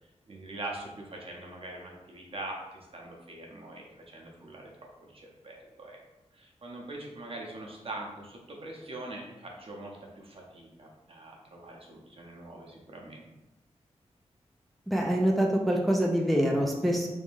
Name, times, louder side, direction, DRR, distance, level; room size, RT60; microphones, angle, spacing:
voice 1, 0.3-4.7 5.0-6.0 6.3-13.3, right 2 dB, 55° right, -1 dB, 0.7 m, -43 dB
voice 2, 14.9-17.1, equal, ahead, -1 dB, 0.4 m, -25 dB
3.5 x 3.4 x 2.6 m, 1.0 s
wide cardioid pair, 115°, 11 cm